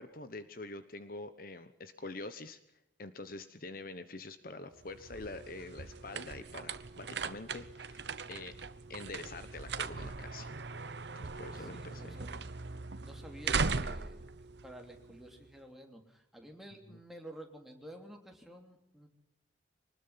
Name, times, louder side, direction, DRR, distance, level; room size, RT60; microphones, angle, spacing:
voice 1, 0.0-2.6 3.0-8.6 8.9-10.5 11.1-12.2 16.9-17.0, left 2 dB, 50° left, 11 dB, 1.1 m, -46 dB
sound 1, 4.8-15.5, right 4 dB, 70° right, 1.0 m, -39 dB
voice 2, 11.5-14.2 14.6-19.1, right 1 dB, ahead, 2 dB, 3.2 m, -51 dB
24.0 x 20.0 x 5.8 m, 0.82 s
head